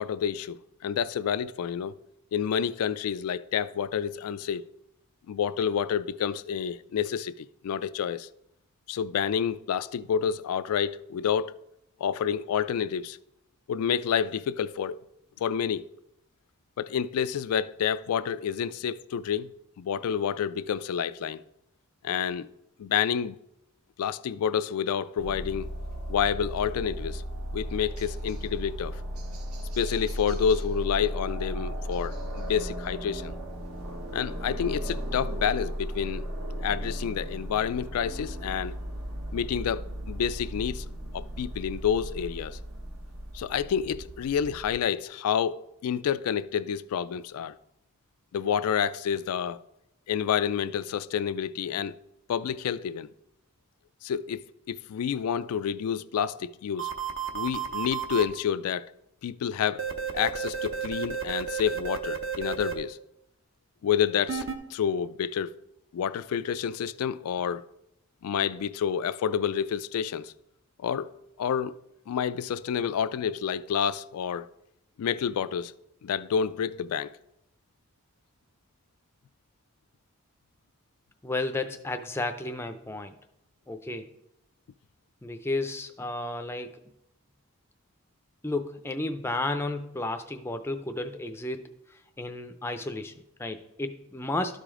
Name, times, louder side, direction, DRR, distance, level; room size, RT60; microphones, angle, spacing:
voice 1, 0.0-2.0 2.3-4.6 5.3-8.3 8.9-11.6 12.0-13.2 13.7-15.0 15.4-15.8 16.8-21.4 22.0-22.5 22.8-23.4 24.0-25.7 26.1-27.2 27.5-29.0 29.8-33.3 34.1-36.2 36.6-38.7 39.3-40.8 41.1-42.6 43.3-47.5 48.3-49.6 50.1-51.9 52.3-53.1 54.0-56.9 57.3-58.9 59.2-59.9 60.1-63.0 63.8-64.4 64.7-65.5 65.9-67.6 68.2-70.3 70.8-71.1 71.4-71.7 72.1-74.5 75.0-75.7 76.0-77.1, left 8 dB, 80° left, 0.3 m, -29 dB
sound 1, 25.2-44.8, equal, 75° right, 1.2 m, -36 dB
sound 2, 56.8-58.2 59.8-62.7 64.3-64.6, right 7 dB, 60° right, 0.7 m, -32 dB
voice 2, 81.2-83.1 83.7-84.1 85.2-86.8 88.4-94.6, left 2 dB, 10° left, 0.4 m, -33 dB
12.0 x 5.0 x 3.7 m
head